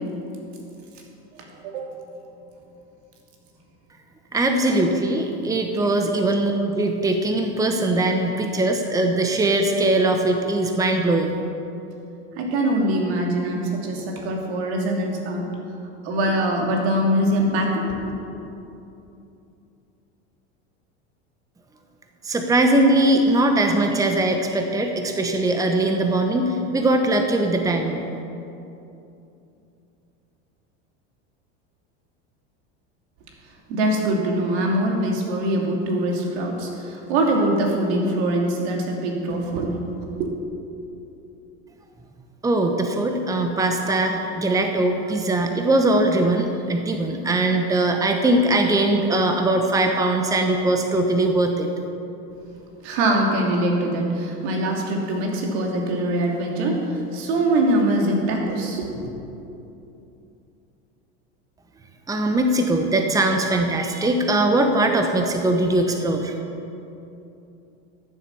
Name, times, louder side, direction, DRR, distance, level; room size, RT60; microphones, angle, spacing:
voice 1, 4.3-11.4 22.2-28.0 42.4-51.7 62.1-66.3, right 2 dB, 10° right, 4 dB, 1.0 m, -21 dB
voice 2, 12.4-15.4 16.0-18.1 33.7-40.3 52.8-56.9 57.1-59.0, right 1 dB, 75° right, 0 dB, 2.6 m, -23 dB
13.5 x 7.5 x 6.9 m, 2.8 s
supercardioid pair, 115°, 33 cm